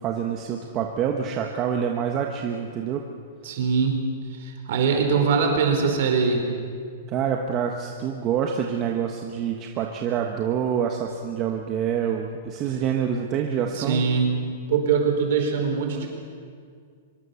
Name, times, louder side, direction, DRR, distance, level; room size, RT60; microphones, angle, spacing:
voice 1, 0.0-3.0 7.1-14.0, right 8 dB, 20° right, 2 dB, 1.2 m, -26 dB
voice 2, 3.4-4.0 4.3-6.4 13.8-14.3 14.7-16.1, right 5 dB, 50° right, 3 dB, 4.5 m, -22 dB
24.0 x 23.0 x 7.0 m, 2.1 s
supercardioid pair, 175°, 0 cm